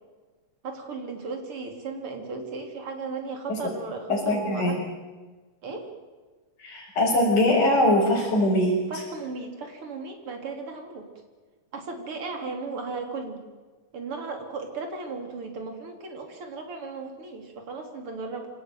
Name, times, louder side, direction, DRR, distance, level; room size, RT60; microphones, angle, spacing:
voice 1, 0.6-4.8 5.6-5.9 8.9-11.1 11.7-13.4 13.9-18.5, right 4 dB, 40° right, 4 dB, 3.9 m, -36 dB
voice 2, 4.1-4.8 6.6-8.7, left 1 dB, 65° left, -5 dB, 6.5 m, -22 dB
25.5 x 18.0 x 9.2 m, 1.3 s
omnidirectional pair, 3.9 m